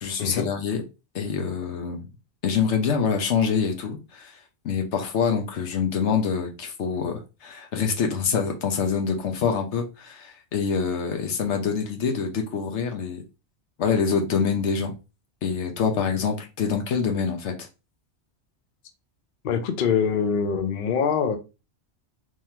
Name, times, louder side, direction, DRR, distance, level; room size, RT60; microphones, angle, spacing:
voice 1, 0.0-0.8 1.1-2.1 2.4-4.3 4.6-13.2 13.8-15.0 15.4-17.5, left 6 dB, 85° left, 1.1 m, -25 dB
voice 2, 19.4-21.4, left 6 dB, 55° left, 0.7 m, -24 dB
3.7 x 3.1 x 2.7 m
omnidirectional pair, 1.1 m